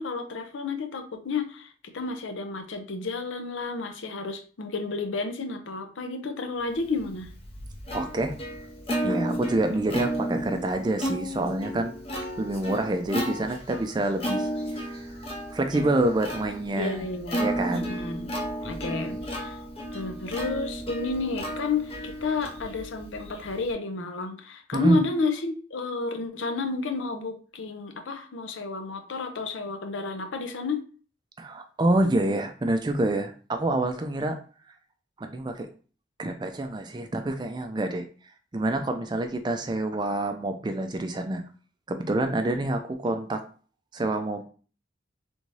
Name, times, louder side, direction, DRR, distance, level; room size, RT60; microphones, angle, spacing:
voice 1, 0.0-7.3 9.9-10.0 16.8-18.3 18.6-19.6 19.9-30.9, left 3 dB, 85° left, 7 dB, 0.6 m, -31 dB
Plucked string instrument, 7.0-23.7, equal, 30° left, 0.6 m, -33 dB
voice 2, 7.9-8.3 9.0-11.9 12.4-14.5 14.8-15.0 15.5-17.0 17.4-17.9 18.9-19.2 24.7-25.0 31.4-34.4 35.2-35.7 36.2-38.1 38.5-41.4 41.9-43.4 43.9-44.4, right 1 dB, 25° right, 6 dB, 0.3 m, -27 dB
3.4 x 2.6 x 3.1 m, 0.39 s
head